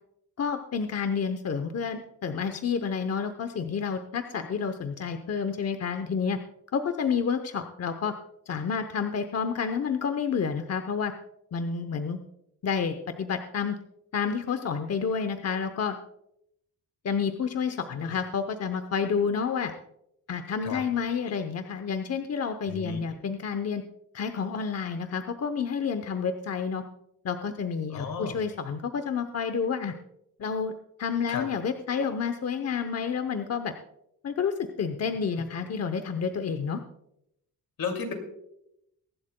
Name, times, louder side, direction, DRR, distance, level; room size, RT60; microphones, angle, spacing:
voice 1, 0.4-6.4 6.7-8.1 8.5-11.1 11.5-12.2 12.6-13.8 14.1-16.0 17.0-19.7 20.3-23.8 24.1-26.8 27.2-29.9 30.4-30.7 31.0-33.7 34.2-36.8, left 6 dB, 45° left, 8 dB, 0.8 m, -29 dB
voice 2, 22.7-23.0 27.9-28.4 31.3-31.4 35.3-35.4 37.8-38.1, left 5 dB, 80° left, 4 dB, 2.6 m, -33 dB
23.0 x 11.5 x 2.2 m, 0.80 s
wide cardioid pair, 145°, 35 cm